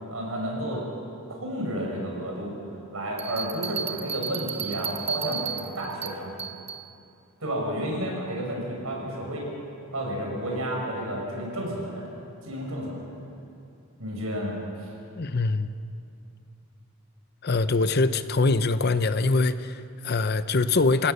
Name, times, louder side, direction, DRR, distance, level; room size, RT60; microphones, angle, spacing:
voice 1, 0.1-0.8 1.3-2.5 2.9-6.4 7.4-9.5 9.9-12.1 12.4-13.1 14.0-14.9, equal, 80° right, -1 dB, 6.1 m, -31 dB
Bell, 3.2-6.9, right 8 dB, 30° right, 0.7 m, -34 dB
voice 2, 15.2-15.7 17.4-21.1, left 3 dB, 50° left, 12 dB, 0.7 m, -23 dB
27.5 x 16.0 x 6.8 m, 2.5 s
head